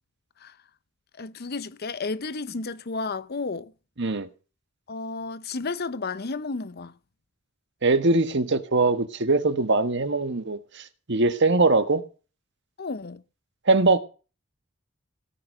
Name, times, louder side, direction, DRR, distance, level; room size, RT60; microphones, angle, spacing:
voice 1, 1.2-3.7 4.9-6.9 12.8-13.2, left 3 dB, 50° left, 0.8 m, -32 dB
voice 2, 4.0-4.3 7.8-12.0 13.7-14.0, right 3 dB, 60° right, 1.5 m, -22 dB
17.5 x 6.0 x 7.8 m
head